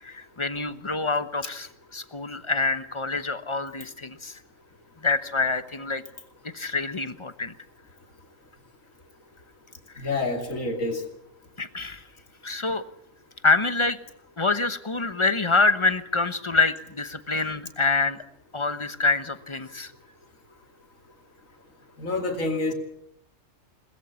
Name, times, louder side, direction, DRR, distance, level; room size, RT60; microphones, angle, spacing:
voice 1, 0.0-4.4 5.0-6.0 6.5-7.5 11.6-12.0 12.4-12.8 13.4-14.0 14.4-18.2 18.5-19.9, left 3 dB, 25° left, 12 dB, 1.0 m, -26 dB
voice 2, 10.0-11.0 22.0-22.7, left 2 dB, 85° left, 4 dB, 3.0 m, -27 dB
22.0 x 20.5 x 7.1 m, 0.74 s
omnidirectional pair, 1.4 m